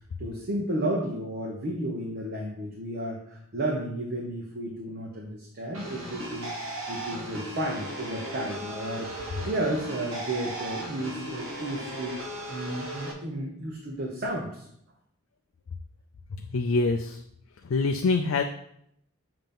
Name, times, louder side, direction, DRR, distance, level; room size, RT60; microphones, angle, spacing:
voice 1, 0.2-6.5 6.9-12.2 12.5-14.7, right 1 dB, 45° right, -2 dB, 0.9 m, -32 dB
sound 1, 5.7-13.1, right 1 dB, 65° right, 1.3 m, -37 dB
voice 2, 16.3-17.2 17.6-18.4, left 3 dB, 65° left, 5 dB, 0.4 m, -25 dB
7.4 x 2.8 x 5.3 m, 0.72 s
head